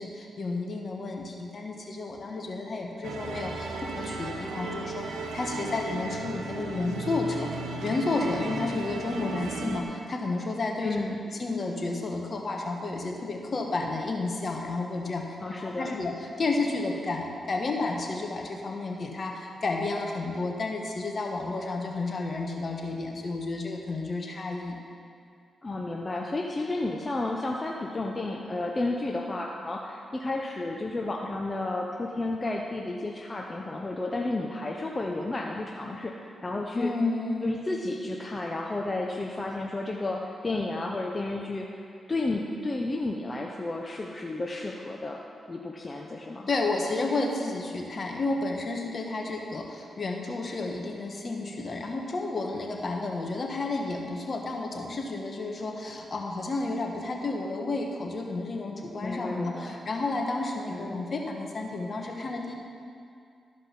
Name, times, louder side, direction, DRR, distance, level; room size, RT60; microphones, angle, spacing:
voice 1, 0.0-5.1 5.3-7.5 7.8-11.0 11.3-15.2 15.6-24.8 36.7-37.6 46.5-62.5, left 3 dB, 50° left, 1 dB, 1.4 m, -31 dB
sound 1, 3.0-9.8, right 3 dB, 85° right, 0.8 m, -35 dB
voice 2, 10.8-11.2 15.4-16.0 25.6-36.9 37.4-45.2 45.5-46.5 59.0-59.8 60.7-61.0, left 2 dB, 30° left, 0 dB, 0.8 m, -32 dB
13.5 x 5.2 x 6.0 m, 2.4 s
cardioid pair, 60°, 0 cm